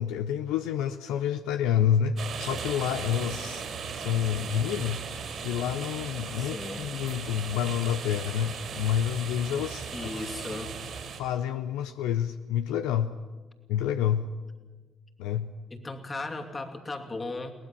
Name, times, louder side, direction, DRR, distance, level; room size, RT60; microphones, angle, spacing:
voice 1, 0.0-3.6 4.0-5.1 5.4-9.9 10.2-10.3 11.2-13.1 13.7-14.3 15.2-15.5, left 9 dB, 80° left, 9 dB, 0.6 m, -28 dB
sound 1, 2.2-11.2, right 6 dB, 60° right, 3.7 m, -37 dB
voice 2, 6.4-6.9 9.9-10.8 15.7-17.5, left 2 dB, 35° left, 5 dB, 2.6 m, -36 dB
22.0 x 18.5 x 7.0 m, 1.3 s
hypercardioid pair, 50°, 0 cm